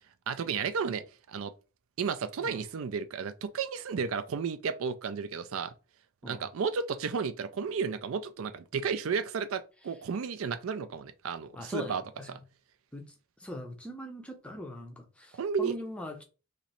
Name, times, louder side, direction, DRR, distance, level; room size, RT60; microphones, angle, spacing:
voice 1, 0.3-1.5 2.0-5.7 6.2-12.0 12.3-12.4 15.3-15.7, right 6 dB, 65° right, 0.4 m, -33 dB
voice 2, 11.5-12.3 12.9-13.1 13.4-16.2, left 1 dB, 5° left, 0.5 m, -41 dB
3.0 x 2.6 x 4.1 m
head